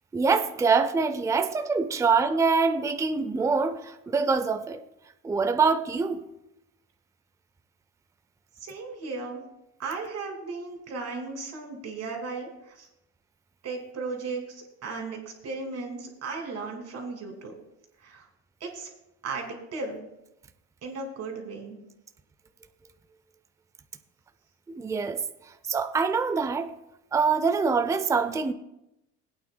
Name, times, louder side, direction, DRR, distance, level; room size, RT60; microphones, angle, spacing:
voice 1, 0.1-4.8 5.2-6.2 24.7-25.2 25.7-26.7 27.1-28.5, right 5 dB, 10° right, 9 dB, 0.5 m, -24 dB
voice 2, 8.6-9.4 9.8-12.9 13.6-17.5 18.0-18.3 18.6-18.9 19.2-20.1 20.8-21.8, right 4 dB, 45° right, 2 dB, 2.6 m, -36 dB
20.0 x 8.7 x 2.2 m, 0.89 s
supercardioid pair, 115°, 35 cm